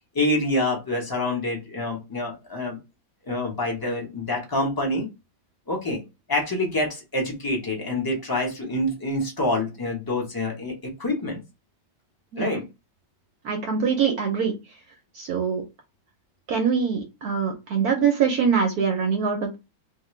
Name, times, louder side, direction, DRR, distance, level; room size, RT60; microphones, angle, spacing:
voice 1, 0.1-2.8 3.3-5.1 5.7-6.0 6.3-11.4 12.4-12.6, left 1 dB, 25° left, 0 dB, 0.5 m, -26 dB
voice 2, 13.4-14.6 15.1-15.6 16.5-19.6, right 6 dB, 70° right, 3 dB, 1.0 m, -23 dB
3.2 x 2.9 x 3.1 m, 0.25 s
omnidirectional pair, 2.1 m